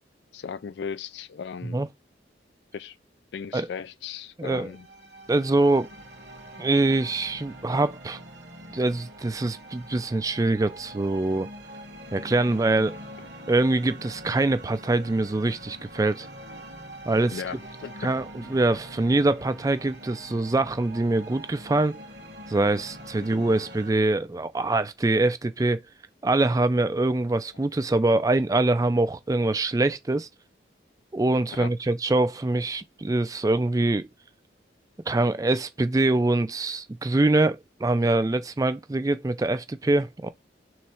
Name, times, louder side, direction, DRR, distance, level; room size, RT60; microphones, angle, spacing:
voice 1, 0.3-1.8 2.7-3.0 3.3-4.9 17.3-18.1 23.2-23.5 31.5-31.7, left 6 dB, 70° left, 0.4 m, -37 dB
sound 1, 4.6-23.9, right 1 dB, 65° right, 1.4 m, -44 dB
voice 2, 5.3-5.9 6.6-8.2 8.7-11.5 12.1-13.0 13.5-16.3 17.1-17.4 18.0-22.0 22.5-25.8 26.2-30.3 31.1-34.0 35.1-40.3, right 2 dB, 20° right, 0.4 m, -24 dB
3.6 x 3.1 x 4.3 m
head